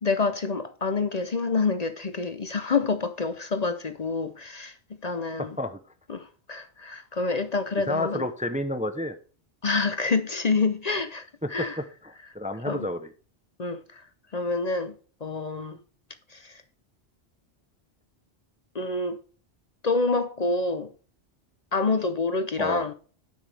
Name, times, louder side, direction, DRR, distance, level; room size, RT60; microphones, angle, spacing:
voice 1, 0.0-4.7 5.0-5.6 6.1-8.3 9.6-11.2 11.5-11.8 12.7-12.9 13.6-14.0 14.3-14.9 15.2-15.8 16.3-16.6 18.7-19.2 19.8-20.9 21.7-22.9, left 3 dB, 45° left, 0.8 m, -27 dB
voice 2, 5.4-5.8 7.9-9.2 11.4-13.1 22.6-22.8, left 1 dB, 10° right, 0.6 m, -30 dB
9.5 x 8.1 x 3.4 m
omnidirectional pair, 1.1 m